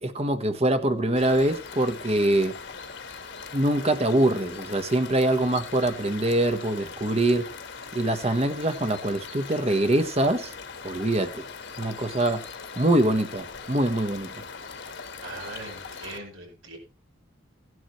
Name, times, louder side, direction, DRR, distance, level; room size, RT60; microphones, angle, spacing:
voice 1, 0.0-2.6 3.5-7.5 7.9-10.5 10.8-11.4 11.8-12.4 12.8-14.3, right 1 dB, 30° right, 1.1 m, -24 dB
sound 1, 1.2-16.2, left 5 dB, 60° left, 1.5 m, -40 dB
voice 2, 15.2-16.8, right 2 dB, 85° right, 5.8 m, -40 dB
17.0 x 11.0 x 3.1 m
head